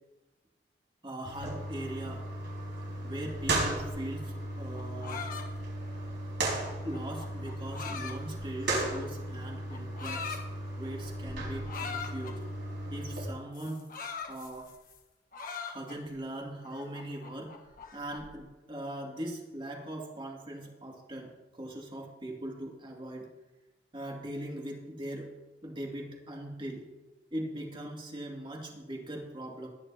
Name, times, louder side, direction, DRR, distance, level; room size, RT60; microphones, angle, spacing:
voice 1, 1.0-2.3 3.0-5.2 6.8-10.4 10.7-12.4 12.9-13.8 14.3-14.7 15.6-17.6 17.9-23.3 23.9-25.3 25.6-26.9 27.3-29.7, right 1 dB, 30° right, 0 dB, 2.4 m, -40 dB
sound 1, 1.2-13.3, right 1 dB, 85° right, 4.7 m, -36 dB
sound 2, 4.6-9.0 9.7-10.4 11.7-12.4 13.5-15.0 15.3-16.2 16.6-18.3, left 6 dB, 50° left, 1.3 m, -42 dB
21.0 x 10.0 x 2.9 m, 1.1 s
head